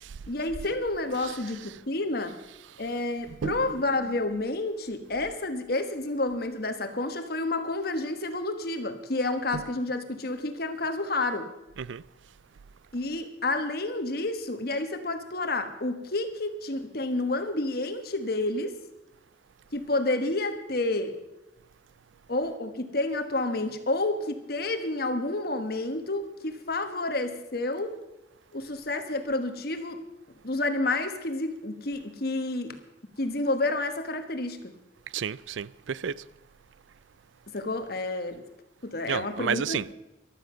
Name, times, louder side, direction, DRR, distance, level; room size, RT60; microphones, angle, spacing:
voice 1, 0.3-2.4 2.8-11.5 12.9-18.7 19.7-21.1 22.3-27.9 28.5-30.0 30.4-32.7 33.2-34.6 37.5-38.4 38.8-39.8, left 2 dB, 50° left, 1.3 m, -30 dB
voice 2, 35.1-36.2 39.1-39.9, right 7 dB, 75° right, 0.4 m, -31 dB
15.5 x 12.0 x 5.6 m
head